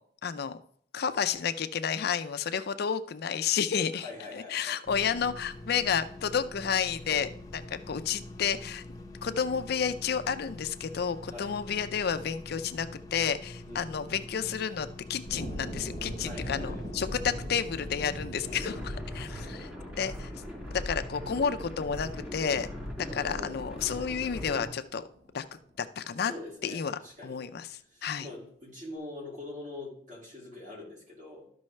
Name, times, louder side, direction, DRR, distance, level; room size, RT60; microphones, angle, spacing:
voice 1, 0.2-0.6 0.9-8.8 9.2-19.7 20.0-20.3 20.7-22.7 23.1-25.0 25.3-25.4 25.8-26.3 26.6-28.3, left 7 dB, 60° left, 11 dB, 0.4 m, -31 dB
voice 2, 3.9-4.7 11.3-11.6 13.6-13.9 16.2-16.8 18.4-19.1 23.0-23.6 26.3-27.4 27.9-31.5, left 2 dB, 45° right, -4 dB, 3.3 m, -43 dB
sound 1, 4.8-19.0, left 1 dB, 20° left, 0.7 m, -45 dB
sound 2, 15.3-26.0, equal, 70° right, 3.9 m, -44 dB
sound 3, 16.3-24.6, left 1 dB, 10° right, 2.8 m, -40 dB
13.0 x 5.4 x 3.2 m, 0.62 s
head